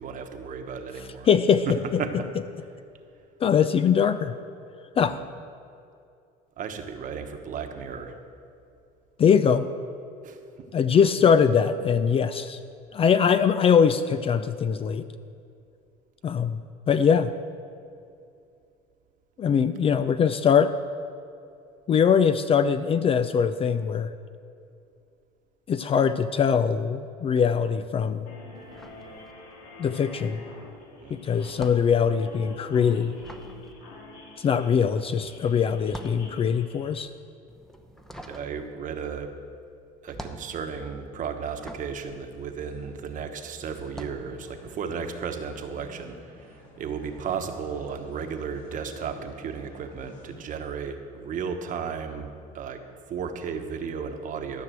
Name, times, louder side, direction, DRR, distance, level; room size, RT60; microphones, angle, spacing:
voice 1, 0.0-1.3 1.7-1.8 2.0-2.1 5.1-5.2 6.6-8.2 10.2-10.4 31.0-31.2 38.3-39.3 40.0-52.8 53.1-54.6, right 6 dB, 45° right, 6 dB, 1.2 m, -34 dB
voice 2, 1.3-2.0 3.4-4.4 5.0-5.2 9.2-9.7 10.7-12.6 12.9-15.0 16.2-16.6 16.9-17.3 19.4-20.7 21.9-24.1 25.7-28.3 29.8-30.4 31.1-33.1 34.4-37.1, left 7 dB, 30° left, 12 dB, 0.4 m, -22 dB
sound 1, 28.3-36.9, left 2 dB, 90° left, 2.2 m, -47 dB
sound 2, 28.5-29.8 30.0-43.2 43.8-44.3, equal, ahead, 0.8 m, -46 dB
sound 3, 42.3-50.4, left 1 dB, 50° left, 3.1 m, -51 dB
13.0 x 5.9 x 7.6 m, 2.5 s
supercardioid pair, 105°, 19 cm